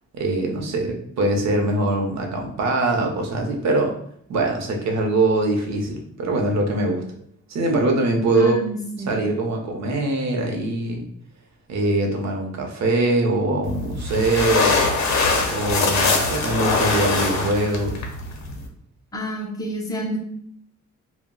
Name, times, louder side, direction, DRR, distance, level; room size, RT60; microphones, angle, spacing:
voice 1, 0.1-3.9 4.3-7.0 7.5-8.6 9.1-11.1 11.7-14.8 15.5-18.0, right 2 dB, 65° right, 2 dB, 0.6 m, -22 dB
voice 2, 8.3-9.1 19.1-20.2, equal, 10° left, -1 dB, 0.5 m, -28 dB
sound 1, 13.6-18.7, left 3 dB, 65° left, 0.6 m, -22 dB
2.3 x 2.0 x 3.6 m, 0.65 s
wide cardioid pair, 165°, 30 cm